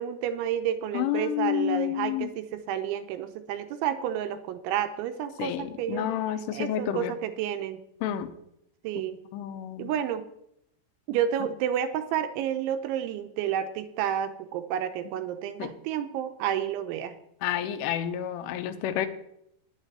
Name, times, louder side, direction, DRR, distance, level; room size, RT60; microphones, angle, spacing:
voice 1, 0.0-6.1 6.5-7.8 8.8-9.2 9.8-10.3 11.1-17.2, right 10 dB, 80° right, 9 dB, 3.0 m, -30 dB
voice 2, 0.9-2.3 5.4-7.1 8.0-8.3 9.3-9.9 15.6-15.7 17.4-19.1, left 11 dB, 80° left, 9 dB, 3.4 m, -29 dB
9.2 x 9.1 x 10.0 m, 0.77 s
omnidirectional pair, 5.8 m